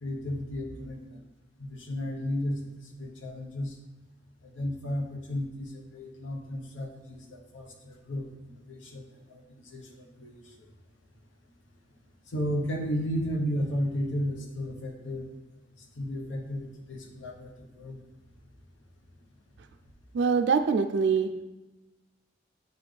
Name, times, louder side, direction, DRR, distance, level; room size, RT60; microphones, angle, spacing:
voice 1, 0.0-1.2 1.6-3.8 4.4-10.7 12.3-15.3 15.8-18.0, equal, 90° left, 2 dB, 0.9 m, -34 dB
voice 2, 20.1-21.3, right 5 dB, 65° right, 7 dB, 0.3 m, -24 dB
8.3 x 4.1 x 3.3 m, 1.1 s
head